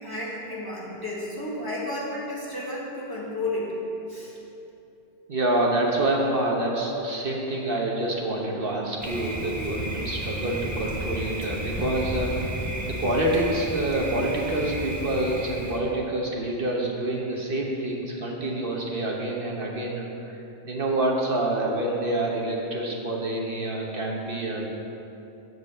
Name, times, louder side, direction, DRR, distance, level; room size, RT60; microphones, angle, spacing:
voice 1, 0.0-3.7 4.1-4.4, left 1 dB, 20° left, -6 dB, 2.1 m, -32 dB
voice 2, 5.3-12.5 12.9-20.4 20.7-24.7, right 1 dB, 60° right, -1 dB, 1.4 m, -27 dB
Thunder, 9.0-15.8, equal, 15° right, 1.3 m, -33 dB
8.1 x 7.8 x 7.7 m, 3.0 s
omnidirectional pair, 1.1 m